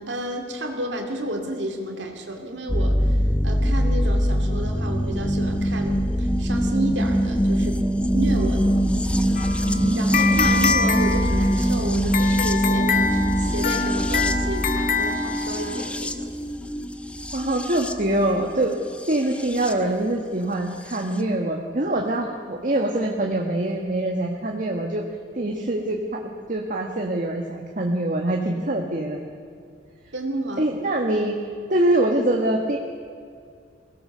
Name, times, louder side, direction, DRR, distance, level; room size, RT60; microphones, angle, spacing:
voice 1, 0.0-3.2 3.4-7.8 8.1-8.6 9.9-16.3 30.1-30.7, right 1 dB, 65° right, 2 dB, 2.5 m, -31 dB
sound 1, 2.7-19.7 20.9-21.0, equal, 5° left, 0.8 m, -23 dB
voice 2, 8.4-9.2 9.6-10.6 17.3-18.8 19.1-25.0 25.3-26.2 26.5-29.2 30.6-31.4 31.7-32.8, right 1 dB, 45° right, 1 dB, 1.5 m, -24 dB
sound 2, 9.4-15.9, left 5 dB, 45° left, 1.1 m, -26 dB
22.5 x 17.5 x 6.8 m, 2.2 s
head